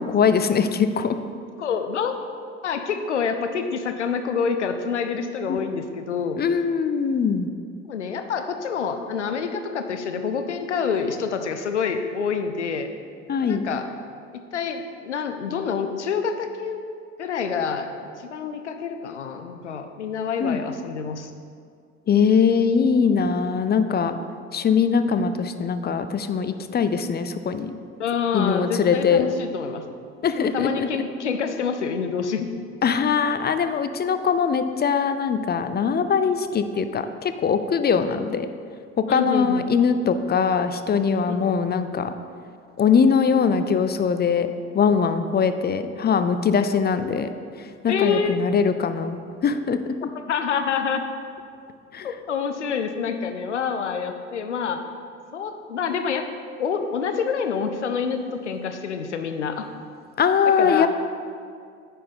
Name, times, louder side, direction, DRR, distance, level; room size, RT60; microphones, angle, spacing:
voice 1, 0.1-1.2 5.5-5.6 6.4-7.5 13.3-13.7 20.4-20.6 22.1-24.2 24.5-27.7 28.3-29.2 30.2-30.9 32.8-38.5 39.1-42.1 42.8-44.5 44.7-47.3 47.6-49.9 51.9-52.1 60.2-60.9, left 6 dB, 30° left, 10 dB, 0.5 m, -21 dB
voice 2, 1.6-2.2 2.6-6.4 7.9-12.9 13.4-13.9 14.3-16.8 17.2-17.9 18.2-21.3 24.1-24.2 28.0-29.8 30.4-32.5 39.1-39.7 41.3-41.4 47.9-48.4 50.3-51.0 52.0-54.8 55.3-56.3 56.6-59.7 60.6-60.9, left 6 dB, 90° left, 7 dB, 0.5 m, -27 dB
9.3 x 4.3 x 5.4 m, 2.2 s
figure-of-eight pair, 50°, 34 cm